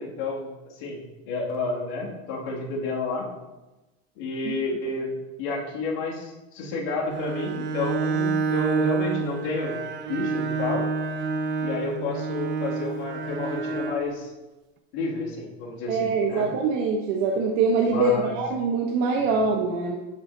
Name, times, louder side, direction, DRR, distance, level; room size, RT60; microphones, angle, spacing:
voice 1, 0.0-3.3 4.2-9.8 10.1-10.9 11.6-14.3 14.9-16.5 17.9-18.3 19.2-19.4, left 3 dB, 65° left, -4 dB, 2.5 m, -30 dB
Bowed string instrument, 7.0-14.1, right 5 dB, 35° right, 0.6 m, -28 dB
voice 2, 15.9-20.0, right 4 dB, 60° right, 0 dB, 1.0 m, -24 dB
11.0 x 5.6 x 2.8 m, 1.1 s
supercardioid pair, 130°, 32 cm